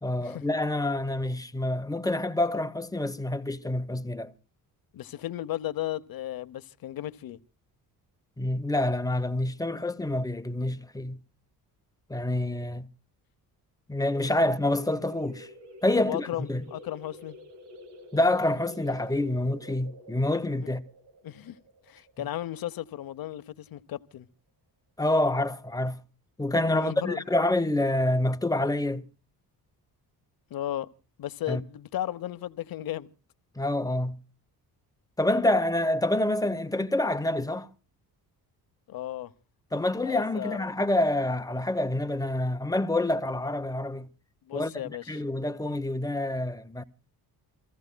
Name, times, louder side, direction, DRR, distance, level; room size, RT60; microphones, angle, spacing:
voice 1, 0.0-4.3 8.4-11.2 12.1-12.9 13.9-15.5 15.8-16.6 18.1-20.8 25.0-26.0 26.4-29.0 31.5-31.6 33.6-34.2 35.2-37.7 39.7-44.1 44.5-46.8, left 1 dB, 10° left, 0.8 m, -27 dB
voice 2, 4.9-7.4 16.0-17.4 21.2-21.6 21.8-24.3 26.7-27.2 30.5-30.9 31.2-33.1 38.9-39.3 40.0-40.7 44.5-45.2, left 13 dB, 60° left, 0.8 m, -35 dB
sound 1, 14.0-23.3, equal, 90° right, 1.3 m, -48 dB
28.5 x 15.0 x 2.2 m
cardioid pair, 100°, 39 cm